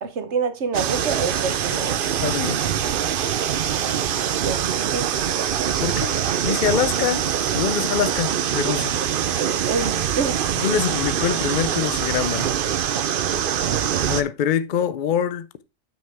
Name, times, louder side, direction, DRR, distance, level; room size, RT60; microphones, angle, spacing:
voice 1, 0.0-2.0 4.4-5.1 8.6-8.8 9.2-10.4, right 5 dB, 90° right, 1.4 m, -27 dB
sound 1, 0.7-14.2, right 9 dB, 60° right, 0.7 m, -24 dB
voice 2, 2.2-2.7 5.8-6.2 6.4-7.2 7.5-8.9 10.6-12.5 14.1-15.7, left 8 dB, 50° left, 0.7 m, -24 dB
8.3 x 6.2 x 3.4 m
omnidirectional pair, 1.1 m